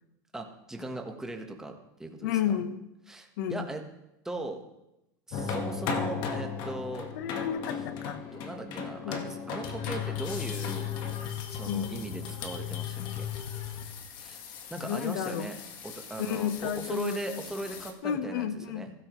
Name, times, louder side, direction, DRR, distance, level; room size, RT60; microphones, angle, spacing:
voice 1, 0.3-2.4 3.1-3.8 4.2-4.6 5.3-7.1 8.0-10.9 11.5-13.3 14.2-14.4 14.7-15.6 15.8-18.9, right 2 dB, 5° right, 3 dB, 1.3 m, -39 dB
voice 2, 2.2-2.9 3.4-3.7 7.1-8.2 9.0-9.3 11.6-12.1 14.8-15.5 16.2-17.4 18.0-18.9, left 9 dB, 75° left, 11 dB, 1.0 m, -32 dB
sound 1, 5.3-17.9, left 6 dB, 45° left, 1.6 m, -36 dB
15.5 x 12.5 x 3.1 m, 0.90 s
supercardioid pair, 140°, 10 cm